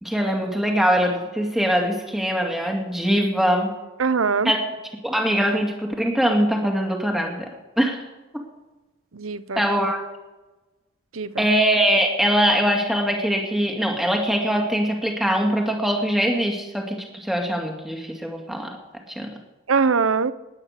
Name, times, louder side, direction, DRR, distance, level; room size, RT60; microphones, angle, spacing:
voice 1, 0.0-3.7 4.4-4.6 5.0-7.5 7.8-8.0 8.3-8.4 9.6-10.0 11.4-18.8 19.1-19.3, equal, ahead, 1 dB, 2.4 m, -22 dB
voice 2, 4.0-4.5 9.1-9.7 11.1-11.4 19.7-20.3, right 5 dB, 90° right, 15 dB, 0.8 m, -22 dB
20.5 x 9.7 x 6.8 m, 1.1 s
head